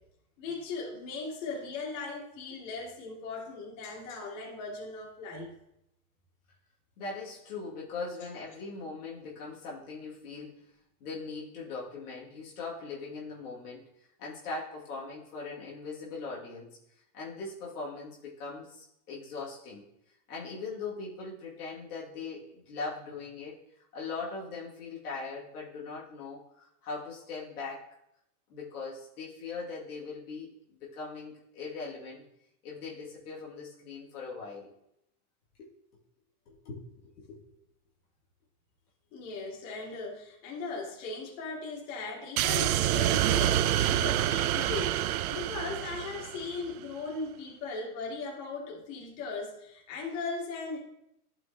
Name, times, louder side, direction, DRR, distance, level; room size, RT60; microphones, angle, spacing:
voice 1, 0.4-5.5 39.1-50.8, left 3 dB, 55° left, -2 dB, 2.5 m, -38 dB
voice 2, 7.0-10.5 11.0-13.8 14.2-16.8 17.1-19.8 20.3-23.6 23.9-27.9 28.5-30.5 30.8-32.2 32.6-34.7 35.6-35.7 36.5-37.4, left 4 dB, 80° left, -5 dB, 2.4 m, -40 dB
sound 1, 42.4-46.7, right 13 dB, 70° right, 0.5 m, -27 dB
11.5 x 5.6 x 2.9 m, 0.79 s
hypercardioid pair, 115°, 45 cm